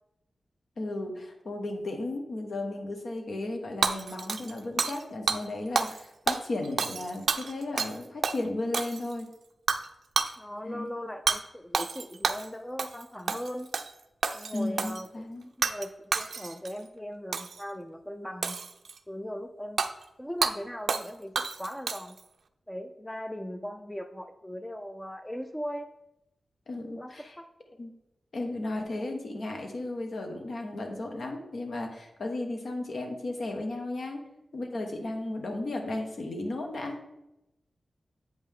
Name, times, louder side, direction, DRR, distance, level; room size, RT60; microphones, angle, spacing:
voice 1, 0.8-9.3 10.6-10.9 14.5-15.4 26.7-27.3 27.8-27.9 28.3-34.2 34.5-37.0, left 2 dB, 70° left, 3 dB, 1.2 m, -34 dB
Hammer / Shatter, 3.8-5.0 5.3-5.4 5.8-6.0 6.3-8.0 8.2-8.4 8.7-9.2 9.7-9.9 10.2-10.3 11.3-11.4 11.7-12.5 12.8-13.0 13.3-13.9 14.2-15.0 15.6-15.9 16.1-16.7 17.3-17.6 18.4-19.0 19.8-19.9 20.4-20.5 20.9-21.1 21.4-22.2, right 5 dB, 80° right, 0.4 m, -29 dB
voice 2, 10.4-13.7 14.3-18.6 19.1-19.8 20.2-22.2 22.7-25.9 26.9-27.5, equal, 10° left, 8 dB, 0.4 m, -39 dB
8.0 x 5.3 x 3.6 m, 0.89 s
wide cardioid pair, 95°, 0 cm